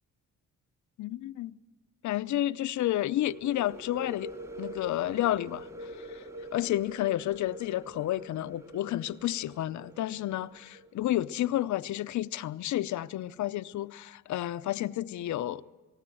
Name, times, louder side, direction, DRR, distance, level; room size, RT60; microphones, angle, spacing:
voice 1, 1.0-1.6 2.0-4.3 4.6-6.2 6.5-15.6, left 14 dB, 70° left, 0.7 m, -31 dB
sound 1, 3.3-10.9, equal, 10° right, 1.1 m, -45 dB
19.5 x 18.5 x 7.7 m
cardioid pair, 90°, 30 cm